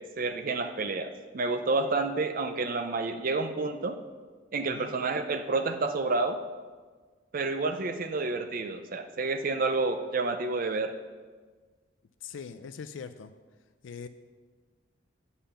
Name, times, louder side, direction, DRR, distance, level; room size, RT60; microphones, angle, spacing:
voice 1, 0.0-4.0 4.5-6.4 7.3-10.9, right 3 dB, 45° right, 8 dB, 0.5 m, -29 dB
voice 2, 12.2-13.3 13.8-14.1, left 6 dB, 70° left, 10 dB, 0.4 m, -41 dB
8.5 x 5.6 x 6.8 m, 1.4 s
head